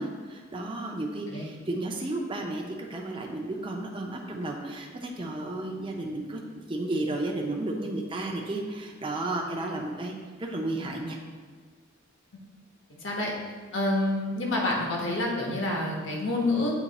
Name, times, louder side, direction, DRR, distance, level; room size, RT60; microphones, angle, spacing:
voice 1, 0.0-11.2, right 2 dB, 25° right, 0 dB, 0.6 m, -33 dB
voice 2, 13.0-13.3 13.7-16.8, left 2 dB, 65° left, -1 dB, 1.2 m, -28 dB
8.3 x 3.1 x 4.1 m, 1.5 s
head